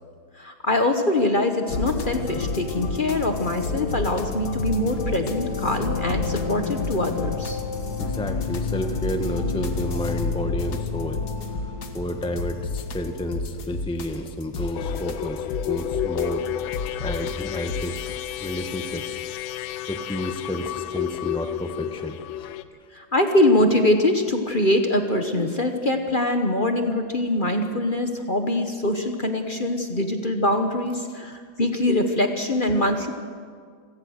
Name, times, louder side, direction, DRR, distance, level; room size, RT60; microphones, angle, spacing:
voice 1, 0.4-7.6 22.9-33.1, left 1 dB, 35° left, 5 dB, 1.0 m, -23 dB
sound 1, 1.7-18.1, left 4 dB, 55° left, 1.9 m, -29 dB
voice 2, 8.0-11.2 11.9-16.5 17.0-19.2 19.9-22.5 31.2-31.3, equal, 5° left, 6 dB, 0.6 m, -31 dB
sound 2, 14.7-22.6, left 13 dB, 90° left, 1.5 m, -31 dB
26.5 x 16.5 x 6.5 m, 2.1 s
omnidirectional pair, 2.2 m